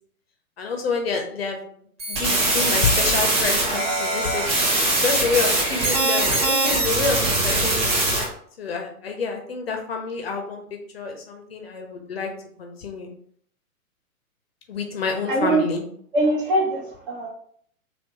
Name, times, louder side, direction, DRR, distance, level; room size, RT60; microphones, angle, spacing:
voice 1, 0.6-1.6 2.1-4.5 5.0-8.0 8.6-12.3 12.6-13.1 14.7-15.8, left 4 dB, 45° left, 3 dB, 0.7 m, -28 dB
sound 1, 2.0-8.2, right 2 dB, 20° right, 0.6 m, -22 dB
voice 2, 15.3-15.6 16.1-17.3, right 2 dB, 35° right, -1 dB, 1.0 m, -22 dB
3.3 x 2.9 x 2.8 m, 0.62 s
figure-of-eight pair, 120°, 44 cm